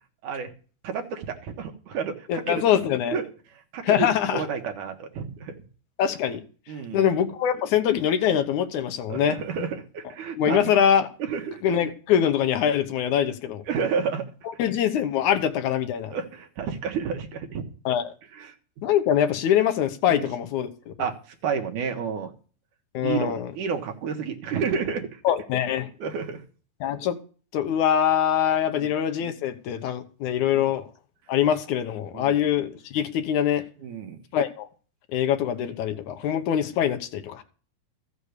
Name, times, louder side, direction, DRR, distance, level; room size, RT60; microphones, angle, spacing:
voice 1, 0.8-2.6 3.1-3.2 3.7-5.6 6.7-7.1 9.1-10.6 11.2-11.6 13.7-14.3 16.1-17.6 18.3-18.5 20.1-20.2 21.0-22.3 23.0-25.2 26.0-26.4 28.7-28.9 30.5-30.6 32.1-32.4 33.8-34.2, right 6 dB, 60° right, 2.7 m, -30 dB
voice 2, 2.3-3.2 3.8-4.5 6.0-6.4 6.9-9.4 10.4-11.1 11.6-13.6 14.6-16.2 17.9-18.1 18.8-20.9 22.9-23.5 25.2-25.9 26.8-27.2 27.5-30.9 31.3-33.6 34.3-34.7 35.1-37.4, left 9 dB, 65° left, 2.0 m, -23 dB
14.0 x 7.0 x 6.6 m
omnidirectional pair, 4.4 m